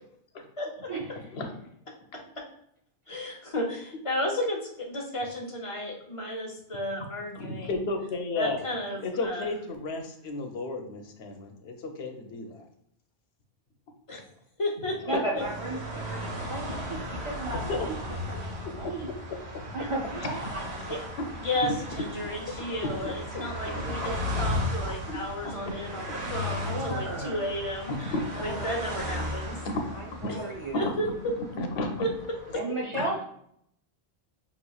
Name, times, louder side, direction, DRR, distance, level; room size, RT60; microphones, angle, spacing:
voice 1, 3.1-7.8 8.3-9.5 14.1-14.2 14.6-15.4 20.9-21.0 21.3-29.6 30.3-31.3 32.0-32.1, equal, 35° left, -1 dB, 0.9 m, -33 dB
voice 2, 7.4-8.6 9.0-12.6 15.1-15.5 17.7-17.8 19.3-19.4 23.0-24.1 25.1-25.2 26.9-27.0 27.9-28.2 28.5-28.6 29.6-29.9 30.2-30.3 30.7-30.8 31.6-31.9 32.9-33.0, left 3 dB, 80° left, 4 dB, 0.9 m, -33 dB
voice 3, 15.1-17.9 18.3-19.1 19.7-20.9 26.4-27.4 28.1-28.9 29.9-30.9 32.5-33.2, right 2 dB, 40° right, -3 dB, 0.5 m, -35 dB
sound 1, 15.4-32.5, left 1 dB, 80° right, 1.3 m, -36 dB
5.9 x 3.0 x 2.3 m, 0.70 s
omnidirectional pair, 1.0 m